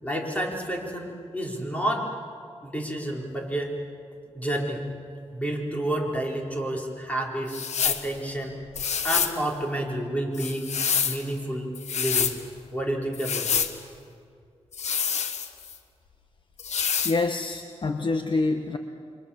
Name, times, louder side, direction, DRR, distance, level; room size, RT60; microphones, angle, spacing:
voice 1, 0.0-2.1 2.6-3.7 4.3-4.9 5.3-7.6 7.8-8.6 9.0-11.7 12.0-12.3 12.7-13.6, right 1 dB, 10° left, 0 dB, 4.3 m, -30 dB
sound 1, 7.5-8.1 8.7-9.4 10.3-11.2 11.7-12.4 13.1-13.7 14.7-15.8 16.6-17.2, left 6 dB, 90° left, 1.3 m, -27 dB
voice 2, 17.0-18.8, left 3 dB, 45° left, 6 dB, 1.2 m, -26 dB
28.5 x 24.5 x 7.1 m, 2.3 s
wide cardioid pair, 105°, 11 cm